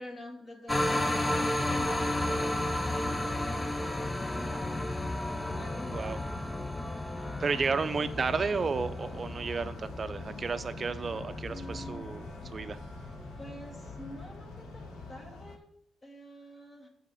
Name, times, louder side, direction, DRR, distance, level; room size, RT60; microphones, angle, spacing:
voice 1, 0.0-2.4 2.9-5.0 5.4-5.9 6.3-7.6 11.5-12.1 13.4-15.7 16.0-16.9, left 1 dB, 30° left, 0 dB, 2.1 m, -48 dB
sound 1, 0.7-15.6, left 1 dB, 15° left, 0.6 m, -34 dB
sound 2, 1.8-15.2, left 1 dB, 70° left, 4.0 m, -51 dB
voice 2, 7.4-12.8, right 4 dB, 40° right, 12 dB, 0.6 m, -32 dB
sound 3, 7.9-15.6, left 5 dB, 85° left, 0.8 m, -49 dB
7.3 x 5.0 x 6.3 m, 0.71 s
cardioid pair, 90°, 0 cm